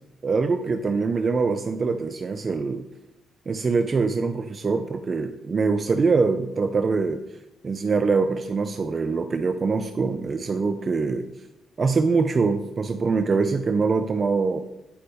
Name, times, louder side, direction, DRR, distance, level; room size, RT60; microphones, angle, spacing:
voice 1, 0.2-2.9 3.5-7.2 7.6-11.3 11.8-14.6, right 4 dB, 40° right, 8 dB, 0.4 m, -23 dB
8.5 x 5.0 x 3.4 m, 0.95 s
cardioid pair, 90°, 0 cm